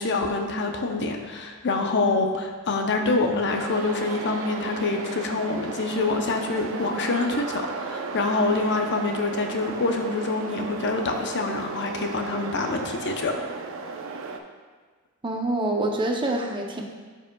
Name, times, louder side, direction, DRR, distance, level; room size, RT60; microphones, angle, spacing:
voice 1, 0.0-13.3, left 3 dB, 55° left, 4 dB, 0.6 m, -26 dB
sound 1, 3.5-14.4, right 4 dB, 65° right, 0.5 m, -35 dB
voice 2, 15.2-16.8, right 2 dB, 20° right, 1 dB, 0.6 m, -26 dB
12.0 x 4.9 x 2.2 m, 1.4 s
head